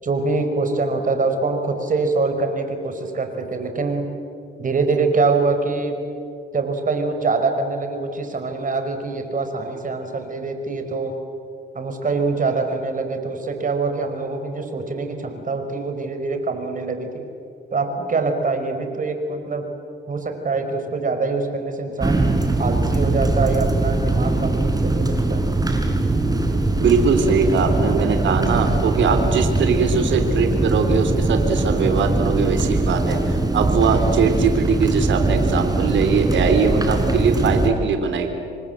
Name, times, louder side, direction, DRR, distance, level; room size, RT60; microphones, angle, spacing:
voice 1, 0.0-4.1 4.6-6.0 6.5-11.2 11.7-17.3 17.7-19.7 20.1-22.3 22.6-25.5, right 3 dB, 40° right, 6 dB, 4.8 m, -24 dB
sound 1, 22.0-37.7, right 2 dB, 20° right, 4.3 m, -21 dB
voice 2, 26.8-38.3, right 5 dB, 70° right, 6 dB, 3.6 m, -21 dB
28.5 x 24.5 x 8.0 m, 2.4 s
cardioid pair, 90°, 20 cm